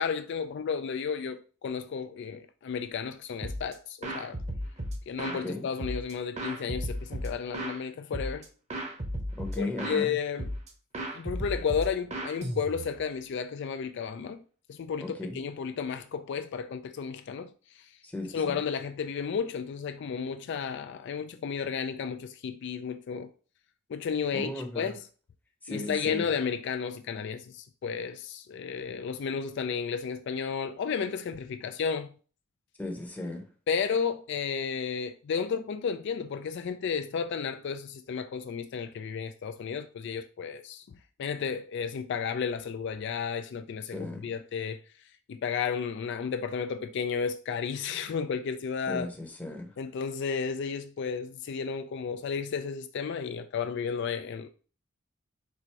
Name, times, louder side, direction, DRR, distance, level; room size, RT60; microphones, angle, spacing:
voice 1, 0.0-4.4 5.1-8.5 9.6-10.5 11.1-14.4 14.7-17.9 18.3-23.3 23.9-25.0 25.7-32.1 33.7-40.8 41.2-44.8 45.3-49.1 49.8-54.5, left 6 dB, 60° left, 0.3 m, -33 dB
sound 1, 3.4-3.7 4.0-5.4 5.8-7.8 8.1-8.4 8.7-10.0 10.4-10.7 10.9-13.0, equal, 35° right, 0.9 m, -35 dB
voice 2, 5.3-5.7 9.4-10.1 15.0-15.4 18.0-18.6 24.3-24.9 25.6-26.2 32.8-33.4 43.9-44.3 48.9-49.7, left 2 dB, 10° left, 0.8 m, -36 dB
4.3 x 2.6 x 4.5 m
head